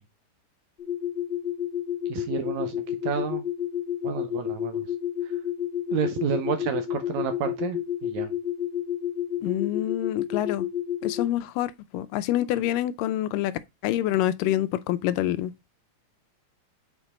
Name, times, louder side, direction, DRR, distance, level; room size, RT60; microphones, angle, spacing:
sound 1, 0.8-11.3, left 10 dB, 30° left, 1.0 m, -30 dB
voice 1, 2.1-3.4 4.0-4.9 5.9-8.3, right 7 dB, 75° right, 1.8 m, -30 dB
voice 2, 9.4-10.7 11.0-13.5 13.8-15.7, left 13 dB, 85° left, 2.2 m, -27 dB
7.0 x 4.4 x 4.2 m
omnidirectional pair, 3.9 m